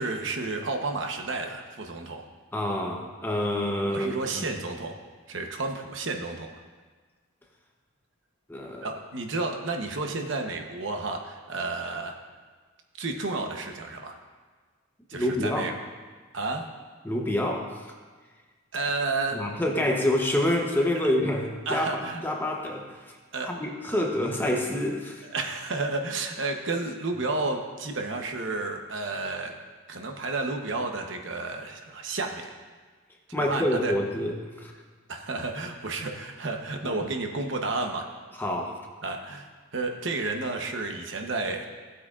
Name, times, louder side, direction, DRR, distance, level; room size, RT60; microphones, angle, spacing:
voice 1, 0.0-2.3 3.8-5.0 5.3-6.5 8.8-12.2 13.0-14.2 15.1-15.7 16.3-16.6 18.7-19.5 21.7-22.2 23.3-23.5 25.2-29.5 29.9-32.5 33.4-33.9 35.1-38.1 39.0-41.6, right 3 dB, 60° right, 3 dB, 0.9 m, -31 dB
voice 2, 2.5-4.5 8.5-8.9 15.1-15.6 17.0-17.9 19.3-23.1 23.4-25.3 33.3-34.7 36.8-37.0 38.4-38.8, left 1 dB, 10° left, 0 dB, 0.8 m, -27 dB
16.0 x 8.3 x 2.5 m, 1.4 s
head